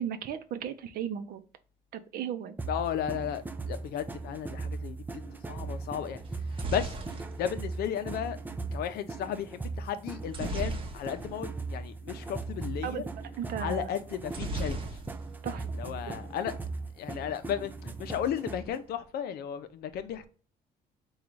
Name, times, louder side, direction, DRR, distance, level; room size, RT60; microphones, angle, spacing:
voice 1, 0.0-1.4 1.9-2.6 12.8-13.1 13.4-13.9 15.4-15.6, right 9 dB, 65° right, 0.6 m, -35 dB
sound 1, 2.6-18.8, right 3 dB, 10° right, 0.4 m, -38 dB
voice 2, 2.7-6.2 6.5-7.0 7.4-8.4 8.7-13.0 13.6-15.0 15.7-16.5 17.0-20.3, left 9 dB, 70° left, 0.6 m, -34 dB
sound 2, 6.3-8.4 10.3-11.5 11.8-11.9 12.1-12.4 14.3-15.5 15.8-16.4, right 2 dB, 30° right, 0.8 m, -38 dB
3.9 x 2.4 x 4.5 m
cardioid pair, 110°, 17 cm